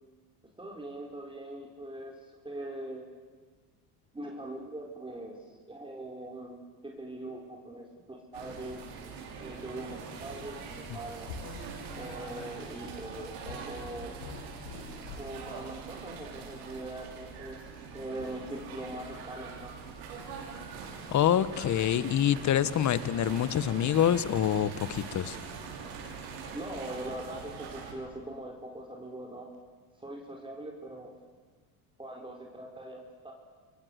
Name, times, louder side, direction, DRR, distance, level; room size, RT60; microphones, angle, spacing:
voice 1, 0.6-3.0 4.1-8.8 9.4-11.3 12.0-14.2 15.2-17.7 17.9-19.8 26.5-29.5 30.0-31.2 32.0-33.3, right 1 dB, 10° right, 0 dB, 4.5 m, -42 dB
sound 1, 8.3-27.9, right 5 dB, 85° right, 6.4 m, -43 dB
sound 2, 11.3-15.4 16.1-16.4 18.2-18.6 20.3-20.4 20.9-21.3 21.8-22.0 23.5-23.8 25.5-25.7 27.2-27.3 28.8-28.9 29.5-29.6, left 4 dB, 85° left, 7.1 m, -46 dB
voice 2, 21.1-25.4, left 10 dB, 45° left, 15 dB, 1.3 m, -26 dB
29.0 x 23.5 x 8.2 m, 1.4 s
supercardioid pair, 100°, 42 cm